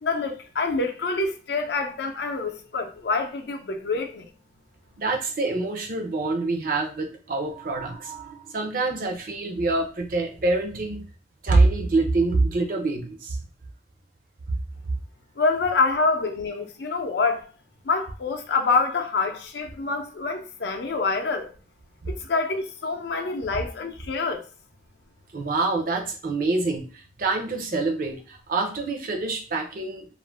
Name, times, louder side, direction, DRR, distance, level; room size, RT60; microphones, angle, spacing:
voice 1, 0.0-4.3 15.4-17.4 17.8-21.5 22.1-24.4, left 3 dB, 70° left, 0.5 m, -26 dB
voice 2, 5.0-11.0 11.4-13.4 25.3-30.1, right 3 dB, 50° right, 0.5 m, -25 dB
2.4 x 2.1 x 3.2 m
head